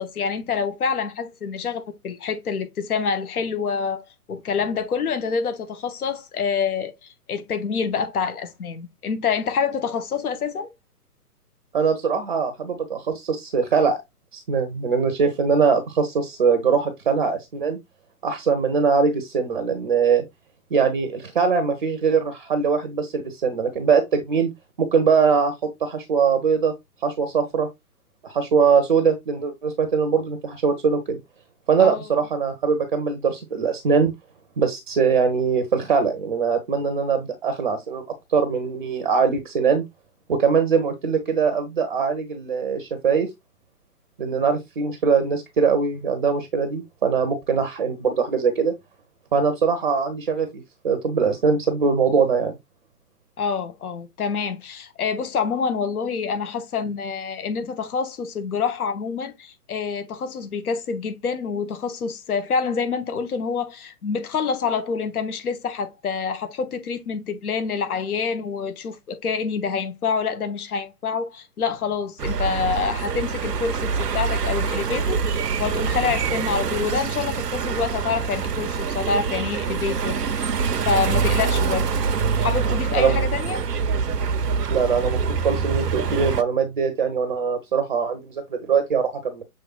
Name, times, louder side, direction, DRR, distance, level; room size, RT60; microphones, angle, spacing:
voice 1, 0.0-10.7 31.8-32.0 53.4-80.2 80.8-81.9 82.4-83.6, left 5 dB, 65° left, 0.9 m, -27 dB
voice 2, 11.7-14.0 14.3-17.8 18.2-20.2 20.7-24.5 24.8-26.7 27.0-27.7 28.2-31.2 31.7-34.1 34.6-38.0 38.3-39.8 40.3-43.3 44.2-48.7 49.3-52.5 83.0-83.2 84.7-85.2 85.4-89.4, right 5 dB, 35° right, 0.6 m, -22 dB
sound 1, 72.2-86.4, right 5 dB, 80° right, 0.7 m, -25 dB
6.7 x 3.2 x 2.3 m
figure-of-eight pair, 135°, 47 cm